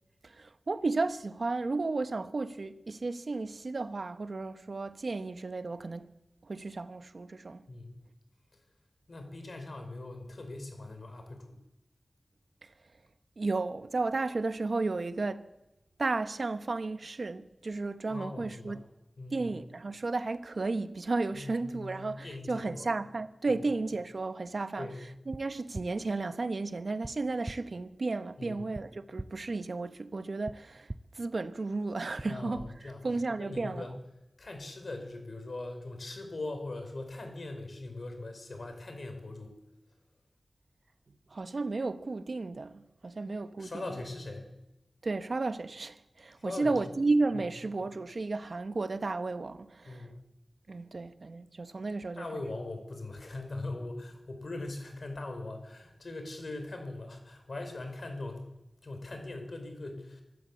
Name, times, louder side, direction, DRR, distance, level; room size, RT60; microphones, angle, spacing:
voice 1, 0.2-6.1 6.5-7.6 13.4-15.5 16.0-18.8 19.3-24.9 25.3-30.9 31.1-32.6 33.0-33.9 41.3-43.9 45.0-50.0 50.7-52.4, right 3 dB, 70° right, 1.2 m, -33 dB
voice 2, 7.7-8.0 9.1-11.6 18.1-18.8 19.2-19.6 21.3-22.9 23.5-23.6 24.8-25.0 28.4-28.6 32.2-33.1 33.4-33.9 34.4-39.5 43.6-44.5 46.4-46.8 47.4-47.5 49.8-50.2 52.1-58.5 58.8-60.2, left 2 dB, 70° left, 5.0 m, -41 dB
sound 1, 25.3-25.4 25.7-25.9 27.0-27.1 27.4-27.6 28.7-28.8 29.2-29.3 30.5-30.6 30.9-31.0 32.2-32.3, right 1 dB, 25° right, 0.8 m, -38 dB
25.5 x 12.5 x 8.5 m
wide cardioid pair, 55°, 0 cm